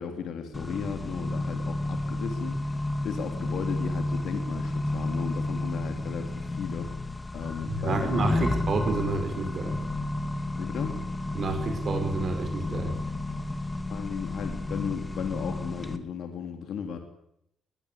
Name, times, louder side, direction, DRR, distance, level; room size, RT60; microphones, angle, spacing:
voice 1, 0.0-6.9 7.3-8.5 10.6-11.0 13.9-17.0, left 7 dB, 75° left, 5 dB, 3.3 m, -35 dB
Accelerating revving vroom, 0.5-16.0, left 2 dB, 15° left, 2.3 m, -31 dB
voice 2, 7.7-9.8 11.3-13.0, right 3 dB, 50° right, 6 dB, 5.7 m, -29 dB
21.5 x 20.5 x 8.6 m, 0.76 s
cardioid pair, 90°, 0 cm